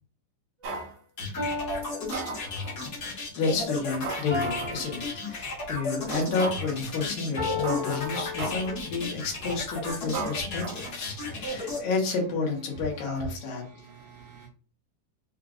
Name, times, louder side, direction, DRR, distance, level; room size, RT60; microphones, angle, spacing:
sound 1, 0.6-0.7 1.4-3.0 4.3-5.9 7.4-9.0, left 4 dB, 5° left, 1.0 m, -35 dB
sound 2, 0.6-0.9 1.8-2.8 3.4-3.5 4.0-4.8 5.3-5.4 6.1-6.8 7.3-7.4 7.6-8.8 9.3-9.6 10.1-11.4 11.6-11.7, right 3 dB, 65° right, 2.0 m, -36 dB
sound 3, 1.2-11.8, left 2 dB, 65° left, 0.9 m, -34 dB
voice 1, 3.0-13.6, left 4 dB, 85° left, 0 dB, 2.9 m, -31 dB
voice 2, 11.5-11.8 13.6-14.5, right 6 dB, 85° right, 0 dB, 1.5 m, -50 dB
6.5 x 2.4 x 2.3 m, 0.39 s
omnidirectional pair, 3.9 m